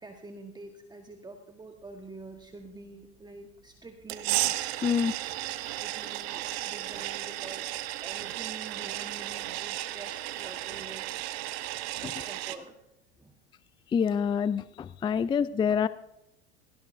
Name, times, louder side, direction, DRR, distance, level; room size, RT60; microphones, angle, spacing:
voice 1, 0.0-4.4 5.6-11.2 12.0-12.8 13.2-13.3, right 2 dB, 15° right, 4 dB, 1.4 m, -47 dB
sound 1, 4.1-12.6, right 16 dB, 65° right, 0.9 m, -34 dB
voice 2, 4.8-5.1 13.9-15.9, left 7 dB, 15° left, 17 dB, 0.4 m, -26 dB
17.5 x 16.0 x 2.6 m, 0.82 s
hypercardioid pair, 85°, 33 cm